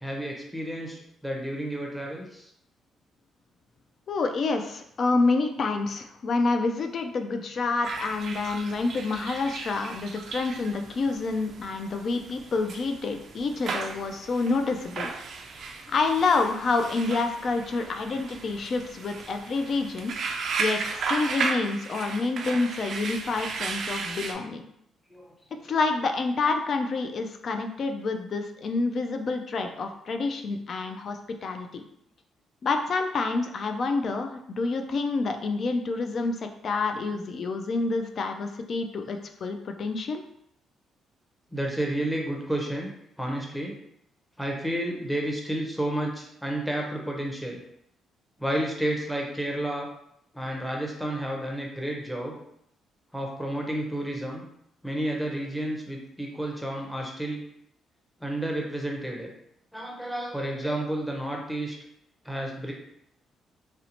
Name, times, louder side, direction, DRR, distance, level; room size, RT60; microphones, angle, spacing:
voice 1, 0.0-2.5 25.1-25.3 41.5-42.9 43.2-43.7 44.4-47.6 48.4-49.9 50.3-52.4 53.1-54.4 54.8-57.4 58.2-59.3 59.7-61.7 62.2-62.7, right 1 dB, ahead, -1 dB, 0.6 m, -31 dB
voice 2, 4.1-15.1 15.9-20.1 20.6-24.7 25.6-31.8 32.6-40.2, left 3 dB, 55° left, 6 dB, 0.3 m, -28 dB
sound 1, 7.8-24.3, right 4 dB, 60° right, 0.3 m, -35 dB
2.7 x 2.1 x 2.8 m, 0.75 s
cardioid pair, 90°, 0 cm